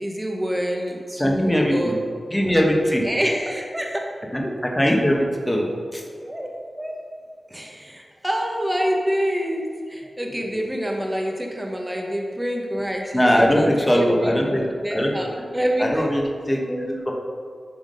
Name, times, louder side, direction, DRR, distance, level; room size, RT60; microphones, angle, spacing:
voice 1, 0.0-1.9 3.0-4.1 6.2-6.5 6.8-6.9 7.5-16.1, equal, 10° right, 0 dB, 1.1 m, -27 dB
voice 2, 1.2-1.9 2.3-3.1 4.3-6.0 13.1-15.1 15.8-17.1, equal, 10° left, -1 dB, 1.2 m, -21 dB
11.0 x 3.7 x 5.3 m, 2.1 s
wide cardioid pair, 100°, 0 cm